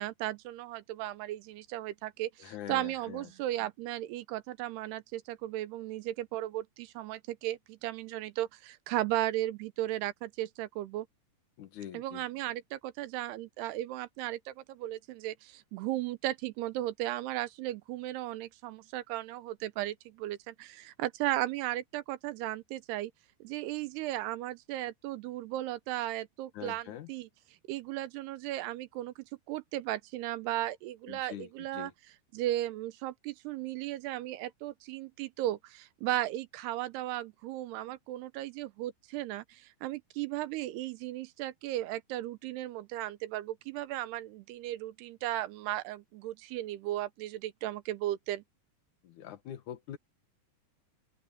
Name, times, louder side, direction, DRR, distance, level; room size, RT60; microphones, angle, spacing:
voice 1, 0.0-11.1 11.9-23.1 23.4-27.3 27.7-29.1 29.5-31.9 32.3-48.4, right 15 dB, 80° right, 2.7 m, -36 dB
voice 2, 2.4-3.3 11.6-12.2 26.5-27.1 31.1-31.9 49.0-50.0, left 11 dB, 60° left, 2.3 m, -44 dB
open air
omnidirectional pair, 4.9 m